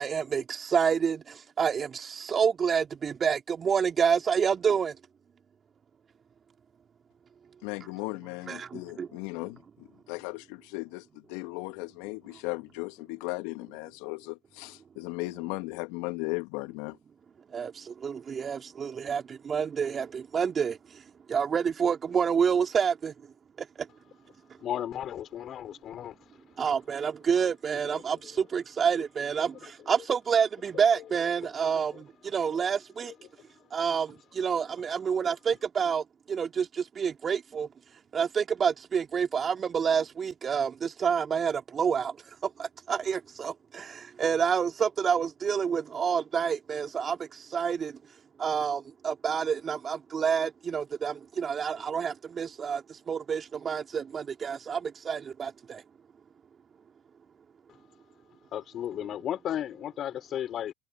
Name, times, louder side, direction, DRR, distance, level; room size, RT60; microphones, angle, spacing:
voice 1, 0.0-5.0 8.5-9.1 17.5-23.3 23.6-23.9 24.5-24.6 26.6-33.1 33.7-37.7 38.1-48.0 48.4-55.8, right 7 dB, 30° right, 3.0 m, -28 dB
voice 2, 7.6-17.0, left 26 dB, 65° left, 1.4 m, -37 dB
voice 3, 24.6-26.1 32.4-32.7 58.5-60.7, left 10 dB, 45° left, 4.8 m, -34 dB
hypercardioid pair, 80°, 0 cm